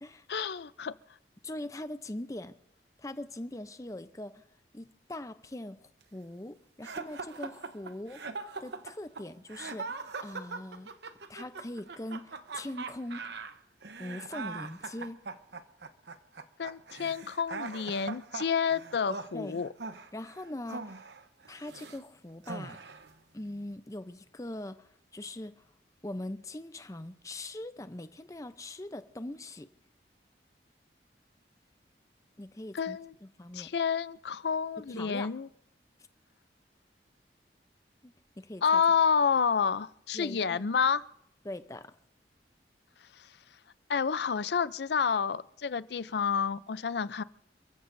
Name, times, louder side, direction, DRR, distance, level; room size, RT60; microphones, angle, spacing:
voice 1, 0.3-0.9 16.6-19.7 32.7-33.1 33.5-35.5 38.6-41.0 43.1-43.3 43.9-47.2, left 6 dB, 70° left, 0.5 m, -29 dB
voice 2, 1.4-2.6 3.0-4.4 4.7-8.3 8.6-10.9 11.3-13.4 14.0-15.2 19.3-19.6 20.1-21.0 21.5-22.8 23.3-25.6 26.0-29.7 32.4-33.7 34.9-35.3 38.0-38.8 40.1-40.7 41.4-41.9, left 1 dB, 20° left, 0.6 m, -41 dB
sound 1, 6.8-22.0 22.4-23.1, right 4 dB, 75° right, 0.9 m, -41 dB
29.0 x 15.0 x 2.7 m
head